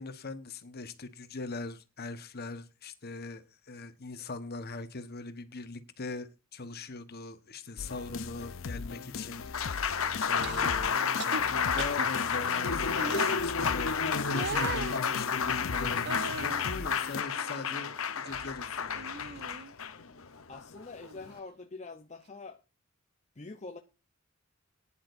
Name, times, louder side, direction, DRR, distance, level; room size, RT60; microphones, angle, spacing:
voice 1, 0.0-14.0 14.3-16.1 16.4-19.4, left 3 dB, 50° left, 1.2 m, -41 dB
sound 1, 7.8-17.2, left 5 dB, 65° left, 0.6 m, -40 dB
Applause, 9.1-21.4, left 6 dB, 80° left, 1.0 m, -31 dB
sound 2, 10.4-10.7 11.2-11.4 11.8-12.1 13.0-13.4 14.3-15.0 16.0-16.6 17.1-18.0 18.2-18.5 18.9-19.7 21.0-21.2, right 5 dB, 55° right, 0.6 m, -39 dB
voice 2, 20.5-22.6 23.4-23.8, left 3 dB, 35° left, 0.8 m, -45 dB
19.5 x 10.0 x 2.6 m
head